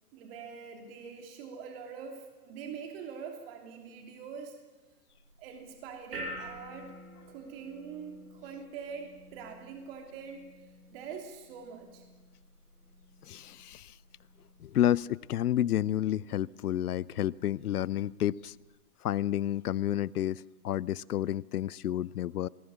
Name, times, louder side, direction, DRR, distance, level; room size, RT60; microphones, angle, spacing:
voice 1, 0.1-4.6 5.4-6.9 7.3-10.4 10.9-12.0, right 6 dB, 35° right, 3 dB, 3.2 m, -44 dB
sound 1, 5.1-18.6, equal, 80° right, 6.9 m, -50 dB
voice 2, 13.2-14.0 14.6-18.6 19.0-22.5, left 12 dB, 70° left, 23 dB, 0.7 m, -30 dB
21.5 x 20.0 x 7.2 m, 1.2 s
hypercardioid pair, 145°, 47 cm